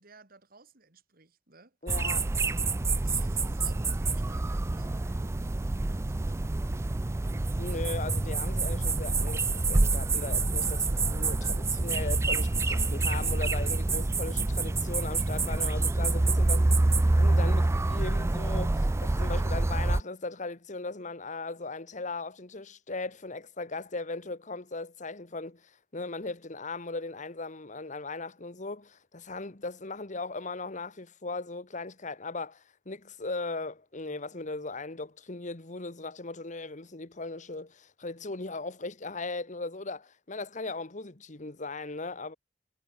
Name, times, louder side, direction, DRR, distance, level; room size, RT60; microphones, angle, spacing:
voice 1, 0.0-1.8 3.0-6.7, right 3 dB, 55° right, 3.3 m, -56 dB
voice 2, 1.8-2.3 7.6-16.7 17.1-42.4, left 3 dB, 45° left, 1.5 m, -38 dB
sound 1, 1.9-20.0, right 2 dB, 15° right, 0.3 m, -27 dB
head